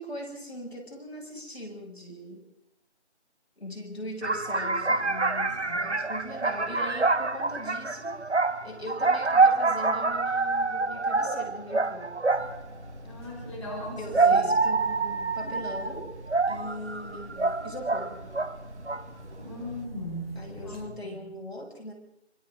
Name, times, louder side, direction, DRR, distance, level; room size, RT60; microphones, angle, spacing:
voice 1, 0.0-2.4 3.6-8.2 8.6-12.2 14.0-16.1 16.5-18.2 20.3-21.9, equal, 65° left, 1 dB, 6.8 m, -40 dB
sound 1, 4.2-12.7 13.7-18.6 18.9-19.2, right 3 dB, 80° right, 1.3 m, -26 dB
voice 2, 5.3-5.8 13.0-14.4 19.4-20.3 20.6-20.8 21.0-21.2, left 1 dB, 25° left, -3 dB, 4.8 m, -38 dB
sound 2, 12.3-20.9, equal, 55° right, 2.9 m, -44 dB
26.5 x 26.5 x 3.8 m, 0.81 s
figure-of-eight pair, 170°, 34 cm